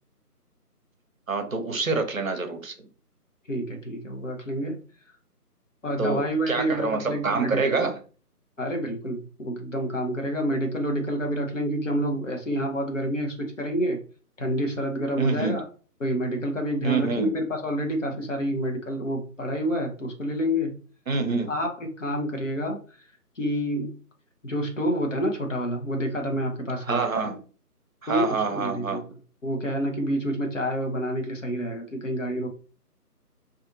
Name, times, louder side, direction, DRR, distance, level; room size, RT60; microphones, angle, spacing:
voice 1, 1.3-2.7 6.0-8.0 15.2-15.5 16.8-17.4 21.1-21.5 26.8-27.4 28.0-29.1, right 4 dB, 60° right, 6 dB, 0.7 m, -26 dB
voice 2, 3.5-4.8 5.8-7.8 8.6-14.0 14.4-15.6 16.0-20.8 21.5-22.8 23.4-23.9 24.4-27.0 28.1-29.0 29.4-32.5, equal, 50° left, 2 dB, 0.8 m, -28 dB
2.5 x 2.5 x 2.6 m, 0.38 s
figure-of-eight pair, 155°, 47 cm